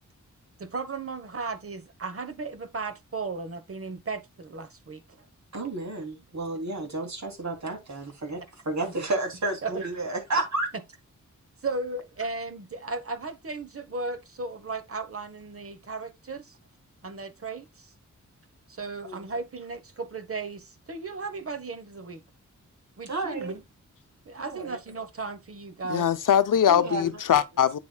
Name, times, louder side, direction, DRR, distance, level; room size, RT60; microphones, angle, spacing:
voice 1, 0.6-5.0 9.6-9.8 11.6-16.6 17.0-17.9 18.7-22.2 23.0-23.6 24.2-26.1, right 3 dB, 45° right, 1.1 m, -35 dB
voice 2, 5.5-10.7 19.0-19.3 23.1-23.5 24.4-24.8 26.7-27.2, right 2 dB, 60° right, 3.0 m, -31 dB
voice 3, 25.9-27.8, left 9 dB, 90° left, 0.7 m, -22 dB
8.8 x 7.1 x 2.3 m
wide cardioid pair, 110°, 31 cm